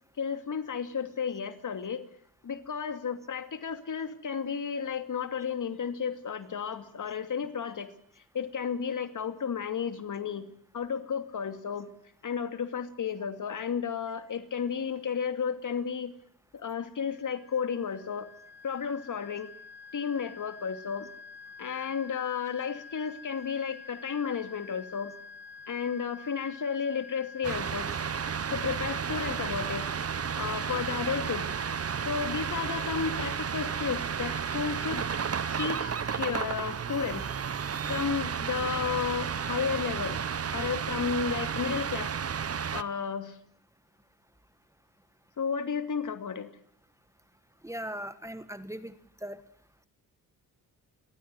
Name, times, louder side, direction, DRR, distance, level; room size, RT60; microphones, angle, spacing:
voice 1, 0.2-2.0 2.4-7.9 8.3-10.5 10.7-11.9 12.2-16.1 16.5-18.3 18.6-19.5 19.9-21.1 21.6-25.1 25.7-27.9 28.5-29.8 30.4-31.5 32.1-35.0 35.6-37.3 37.9-40.2 40.5-42.1 42.7-43.3 45.4-46.5, left 6 dB, 55° left, 9 dB, 2.6 m, -33 dB
sound 1, 17.1-36.1, left 4 dB, 30° left, 7.6 m, -48 dB
sound 2, 27.4-42.8, right 7 dB, 40° right, 1.1 m, -32 dB
voice 2, 47.6-48.9 49.2-49.4, right 1 dB, 10° right, 13 dB, 1.6 m, -38 dB
29.0 x 13.5 x 7.8 m, 0.67 s
cardioid pair, 80°, 36 cm